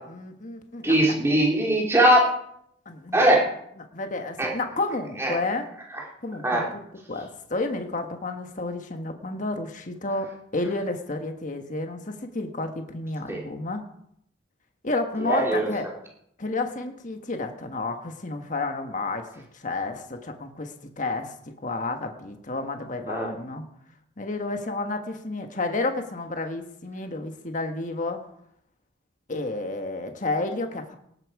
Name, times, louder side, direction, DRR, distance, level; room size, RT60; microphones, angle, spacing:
voice 1, 0.0-1.2 2.8-3.2 3.9-5.6 6.2-6.8 7.1-13.8 14.8-15.9 16.4-21.3 21.6-23.6 24.2-28.2 29.3-31.0, left 2 dB, 40° left, 5 dB, 1.4 m, -31 dB
voice 2, 0.8-2.3 3.1-3.4 4.4-4.5 5.2-5.3 6.4-6.6 13.3-13.4 15.2-15.7 23.1-23.3, right 1 dB, 15° right, -2 dB, 2.8 m, -20 dB
18.5 x 8.9 x 4.8 m, 0.71 s
head